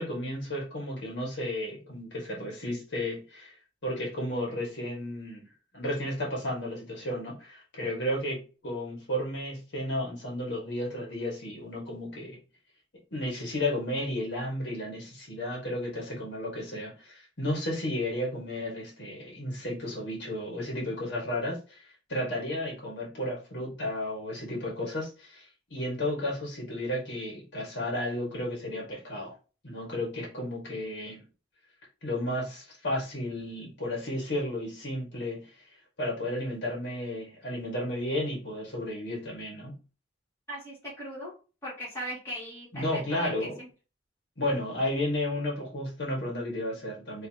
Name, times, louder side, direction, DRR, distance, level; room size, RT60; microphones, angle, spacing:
voice 1, 0.0-3.5 3.8-5.5 5.7-12.4 13.1-21.8 22.1-29.3 29.6-31.2 32.0-35.5 36.0-39.8 42.7-43.6 44.4-47.3, left 1 dB, 65° left, -3 dB, 1.8 m, -33 dB
voice 2, 40.5-41.3 41.6-43.7, equal, 15° left, -7 dB, 2.6 m, -39 dB
4.7 x 3.3 x 2.9 m, 0.34 s
head